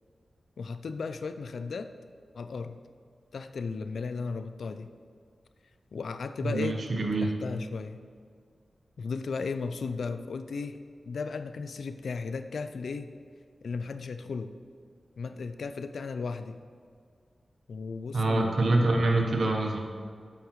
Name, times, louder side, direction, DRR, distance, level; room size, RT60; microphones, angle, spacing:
voice 1, 0.6-1.9 2.3-2.8 3.3-4.9 5.9-6.8 7.2-8.0 9.0-10.8 11.1-13.1 13.6-14.5 15.2-16.6 17.7-18.9, left 4 dB, 85° left, 10 dB, 0.4 m, -35 dB
voice 2, 6.4-7.3 18.1-19.8, right 2 dB, 65° right, 2 dB, 1.1 m, -25 dB
8.3 x 8.1 x 3.1 m, 2.1 s
wide cardioid pair, 95°, 0 cm